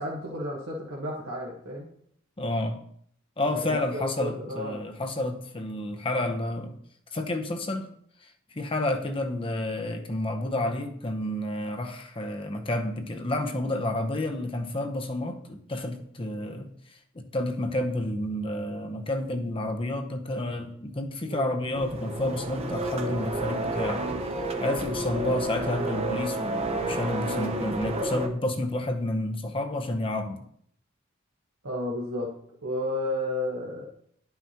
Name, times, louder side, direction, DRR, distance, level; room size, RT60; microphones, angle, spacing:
voice 1, 0.0-1.9 3.7-4.8 21.3-21.5 25.3-25.4 31.6-32.3 32.6-33.8, left 1 dB, 85° right, -4 dB, 1.4 m, -32 dB
voice 2, 2.4-2.8 3.4-6.8 7.1-7.9 8.2-16.7 17.1-24.1 24.6-30.4, left 1 dB, 25° left, 5 dB, 0.7 m, -30 dB
sound 1, 21.7-28.3, right 1 dB, 30° right, 0.7 m, -30 dB
11.0 x 5.7 x 2.9 m, 0.66 s
head